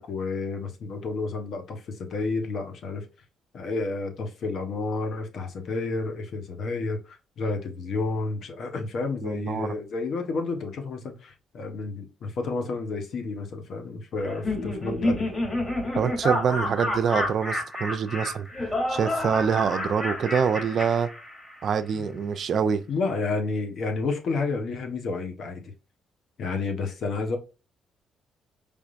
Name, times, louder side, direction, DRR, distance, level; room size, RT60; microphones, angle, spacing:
voice 1, 0.0-3.0 3.5-15.3 21.9-22.0 22.9-25.7 26.4-27.4, left 3 dB, 65° left, 1.2 m, -30 dB
voice 2, 9.2-9.7 15.9-18.5 18.9-21.1 21.6-22.8, right 7 dB, 60° right, 0.5 m, -25 dB
Laughter, 14.2-21.7, left 1 dB, 25° left, 2.5 m, -29 dB
5.1 x 3.5 x 2.5 m
cardioid pair, 90°, 0 cm